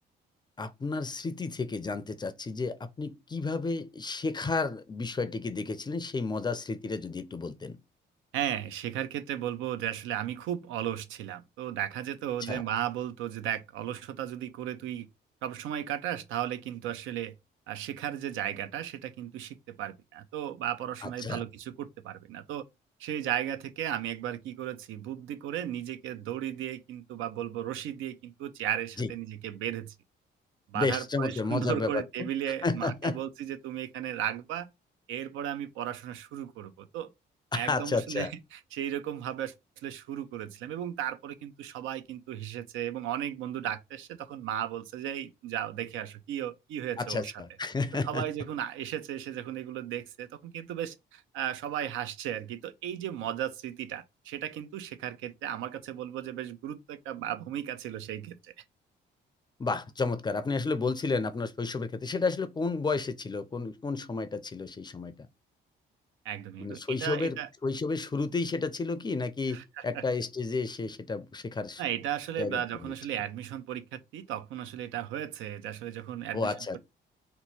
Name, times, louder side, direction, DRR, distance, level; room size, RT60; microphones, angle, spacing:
voice 1, 0.6-7.8 12.4-12.6 21.0-21.4 29.0-29.1 30.7-32.3 32.6-33.2 37.5-38.3 47.0-48.2 59.6-65.1 66.6-71.8 72.4-72.9 76.3-76.8, left 3 dB, 20° left, 0.4 m, -32 dB
voice 2, 8.3-15.1 15.4-17.3 17.7-22.6 23.0-29.9 30.7-34.7 35.1-37.1 37.5-47.3 48.0-58.5 66.2-67.5 69.5-70.0 71.8-76.8, right 11 dB, 90° right, 0.5 m, -35 dB
2.9 x 2.2 x 4.1 m
cardioid pair, 90°, 20 cm